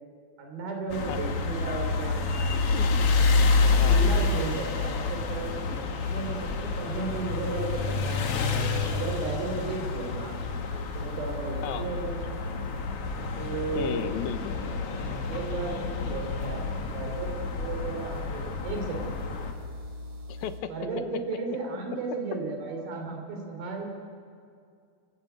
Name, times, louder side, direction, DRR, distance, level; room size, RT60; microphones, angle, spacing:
voice 1, 0.4-2.7 3.7-10.4 11.0-12.4 13.4-14.1 15.3-16.7 16.9-19.2 20.7-23.9, right 3 dB, 80° right, 2 dB, 5.1 m, -34 dB
sound 1, 0.9-19.5, left 4 dB, 55° left, 1.8 m, -28 dB
sound 2, 0.9-20.6, left 2 dB, 50° right, 3.2 m, -41 dB
voice 2, 3.7-4.1 11.6-11.9 13.8-14.5 20.3-20.7, left 10 dB, 90° left, 10 dB, 2.9 m, -34 dB
sound 3, 11.4-17.4, left 1 dB, 15° right, 1.6 m, -46 dB
28.5 x 15.0 x 9.2 m, 2.3 s
omnidirectional pair, 4.2 m